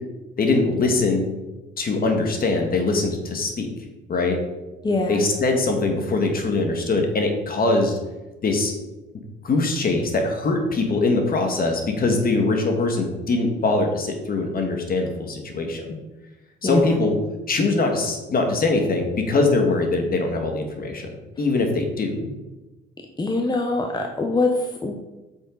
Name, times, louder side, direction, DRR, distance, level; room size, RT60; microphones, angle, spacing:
voice 1, 0.4-1.3 1.8-3.7 4.1-4.4 5.1-8.0 8.4-8.7 9.4-16.0 16.6-17.2 17.5-21.1 21.4-22.3, left 3 dB, 50° left, 3 dB, 1.8 m, -22 dB
voice 2, 4.8-5.3 16.6-17.0 23.2-24.9, left 2 dB, 20° left, 3 dB, 0.9 m, -23 dB
8.1 x 6.4 x 3.9 m, 1.1 s
cardioid pair, 90°, 20 cm